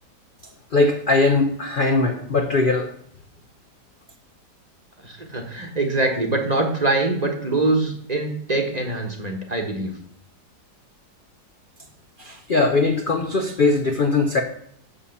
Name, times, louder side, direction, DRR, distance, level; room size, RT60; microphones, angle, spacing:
voice 1, 0.7-2.9 12.2-14.4, left 3 dB, 50° left, 4 dB, 0.6 m, -20 dB
voice 2, 5.0-9.9, right 2 dB, 25° right, 3 dB, 1.1 m, -23 dB
7.2 x 6.9 x 7.0 m, 0.66 s
omnidirectional pair, 1.9 m